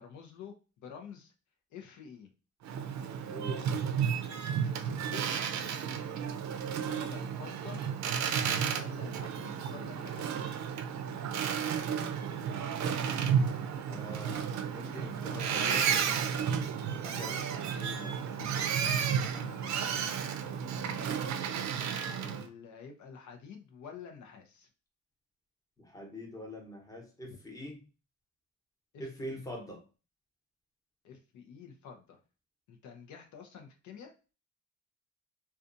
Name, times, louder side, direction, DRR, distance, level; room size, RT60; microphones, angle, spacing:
voice 1, 0.0-1.3 1.7-2.3 4.9-5.3 5.6-5.7 6.8-7.8 8.6-10.5 18.4-18.5 19.3-20.4 20.8-21.8 22.3-24.7 28.9-29.4 31.0-32.2 32.7-34.1, left 6 dB, 70° left, 3 dB, 0.6 m, -49 dB
Boat Water vehicle, 2.6-22.4, right 7 dB, 65° right, 0.5 m, -32 dB
voice 2, 3.3-3.7 13.9-16.3 17.0-18.5 22.2-22.4 25.8-27.8 29.0-29.8, equal, 10° left, 1 dB, 0.9 m, -44 dB
sound 1, 11.7-21.1, right 1 dB, 55° left, 1.3 m, -57 dB
2.5 x 2.3 x 2.5 m, 0.33 s
cardioid pair, 90°, 30 cm